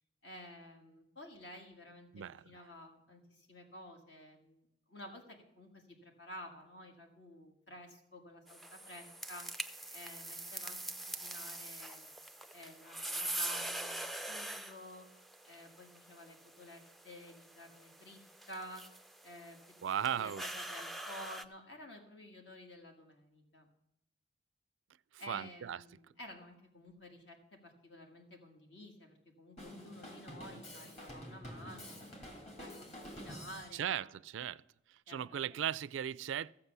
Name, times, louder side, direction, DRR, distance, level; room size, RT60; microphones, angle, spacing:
voice 1, 0.2-4.6 4.9-9.5 9.9-10.8 11.1-12.1 12.5-15.1 15.5-18.2 18.5-18.8 19.2-19.6 20.1-23.7 25.2-32.1 32.6-34.2 35.1-35.6, left 1 dB, 65° left, 1.8 m, -52 dB
voice 2, 2.1-2.6 19.8-20.4 25.1-25.8 33.7-34.6 34.9-36.5, right 9 dB, 80° right, 0.3 m, -37 dB
sound 1, 8.5-21.4, right 1 dB, ahead, 0.3 m, -44 dB
Drum kit, 29.6-33.7, equal, 35° left, 2.5 m, -48 dB
14.5 x 7.6 x 6.8 m
head